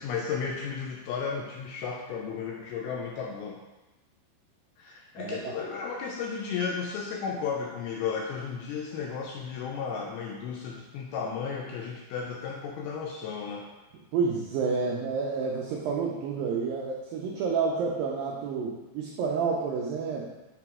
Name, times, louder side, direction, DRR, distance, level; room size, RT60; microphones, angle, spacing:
voice 1, 0.0-3.6 4.8-13.7, left 6 dB, 85° left, -1 dB, 2.2 m, -34 dB
voice 2, 14.1-20.3, right 5 dB, 90° right, -2 dB, 2.0 m, -29 dB
6.9 x 3.0 x 4.7 m, 1.1 s
omnidirectional pair, 4.9 m